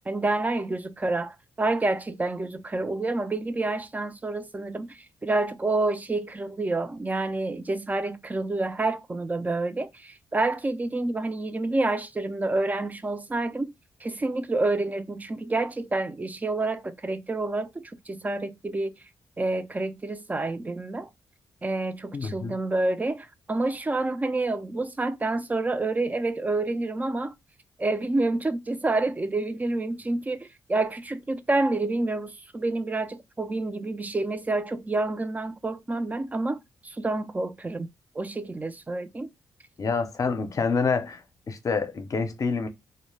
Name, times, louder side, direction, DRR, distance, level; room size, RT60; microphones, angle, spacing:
voice 1, 0.1-13.7 14.0-18.9 19.4-21.1 21.6-27.3 27.8-37.9 38.2-39.3, right 2 dB, 20° right, 0.4 m, -28 dB
voice 2, 22.1-22.6 39.8-41.2 41.5-42.7, left 4 dB, 50° left, 0.6 m, -27 dB
2.2 x 2.0 x 3.1 m
cardioid pair, 65°, 8 cm